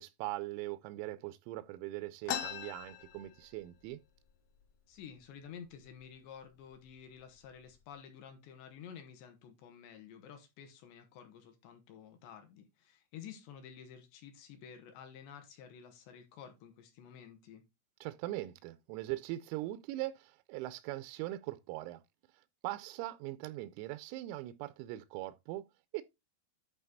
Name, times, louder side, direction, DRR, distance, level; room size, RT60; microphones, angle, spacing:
voice 1, 0.0-4.0 18.0-22.0 22.6-25.7 25.9-26.0, right 17 dB, 85° right, 3.3 m, -41 dB
sound 1, 2.3-3.9 4.2-4.3 4.6-5.2 5.8-5.9 6.6-6.8 7.3-7.7, left 9 dB, 85° left, 2.0 m, -40 dB
voice 2, 4.9-17.6, left 8 dB, 70° left, 3.0 m, -51 dB
11.0 x 4.1 x 3.9 m
omnidirectional pair, 6.0 m